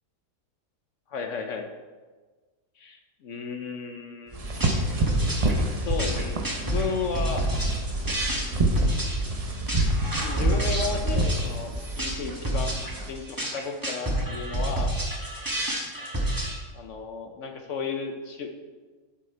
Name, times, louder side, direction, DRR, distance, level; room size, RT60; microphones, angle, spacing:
voice 1, 1.1-1.7 2.8-4.4 5.8-7.4 10.2-12.8 13.0-14.9 16.7-18.5, left 5 dB, 60° left, 4 dB, 0.8 m, -33 dB
sound 1, 4.3-13.1, right 1 dB, 45° right, 0.5 m, -28 dB
sound 2, 4.5-16.5, right 1 dB, 15° right, 1.0 m, -29 dB
7.5 x 6.3 x 4.4 m, 1.4 s
omnidirectional pair, 1.8 m